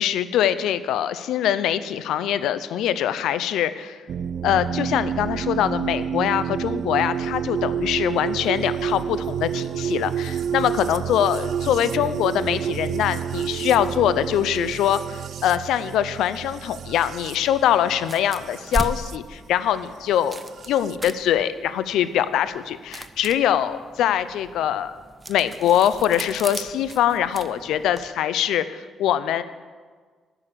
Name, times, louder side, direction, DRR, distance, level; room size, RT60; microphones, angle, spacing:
voice 1, 0.0-4.0 4.4-20.4 20.7-24.9 25.3-29.4, left 10 dB, 85° left, 14 dB, 0.5 m, -23 dB
sound 1, 4.1-19.2 20.3-20.9, right 8 dB, 60° right, 0.3 m, -29 dB
sound 2, 18.0-28.1, right 2 dB, 25° right, 0.7 m, -37 dB
11.0 x 6.9 x 8.9 m, 1.5 s
cardioid pair, 90°, 0 cm